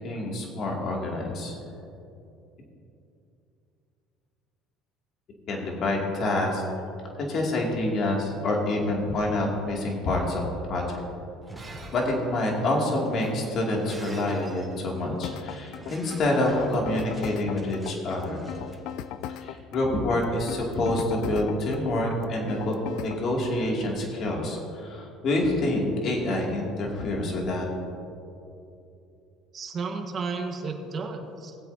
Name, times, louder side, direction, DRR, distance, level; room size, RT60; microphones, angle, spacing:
voice 1, 0.0-1.5 5.5-6.6 7.2-11.0 11.9-18.5 19.4-27.7, left 1 dB, 55° left, -1 dB, 2.6 m, -27 dB
Shatter, 11.3-19.4, right 2 dB, 10° right, 2.7 m, -47 dB
sound 1, 15.2-23.3, left 10 dB, 70° left, 0.4 m, -38 dB
voice 2, 29.5-31.6, right 4 dB, 40° right, 3 dB, 1.5 m, -33 dB
19.0 x 8.2 x 2.8 m, 2.7 s
supercardioid pair, 85°, 0 cm